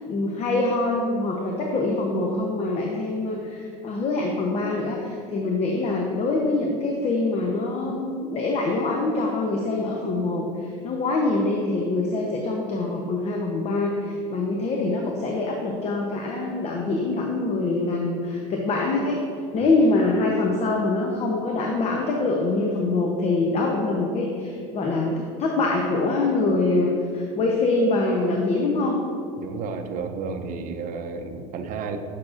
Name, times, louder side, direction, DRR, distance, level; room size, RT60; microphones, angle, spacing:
voice 1, 0.1-19.2 19.5-29.0, left 2 dB, 35° left, 0 dB, 0.8 m, -24 dB
voice 2, 29.4-32.0, right 5 dB, 45° right, 7 dB, 0.6 m, -32 dB
8.5 x 5.9 x 2.5 m, 2.4 s
supercardioid pair, 110°, 19 cm